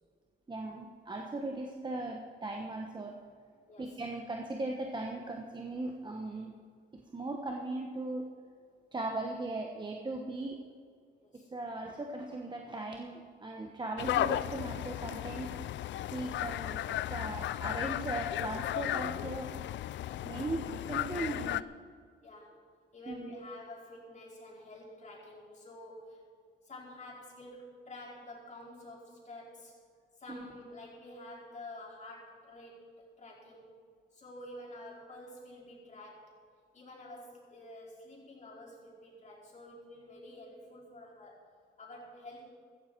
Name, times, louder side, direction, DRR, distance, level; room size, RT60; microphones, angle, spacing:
voice 1, 0.5-3.2 3.8-6.5 6.9-8.3 8.9-10.6 11.5-15.5 16.1-19.5 20.2-21.7 23.1-23.3 30.3-30.5, right 2 dB, 25° right, 1 dB, 1.3 m, -38 dB
voice 2, 3.7-4.0 11.2-11.5 22.2-22.5 22.9-26.2 26.6-29.7 30.2-33.7 34.1-36.3 36.7-41.4 41.8-42.5, left 1 dB, 35° left, -4 dB, 5.0 m, -49 dB
sound 1, 14.0-21.6, left 13 dB, 65° left, 0.4 m, -35 dB
15.5 x 14.5 x 4.7 m, 2.1 s
cardioid pair, 90°, 20 cm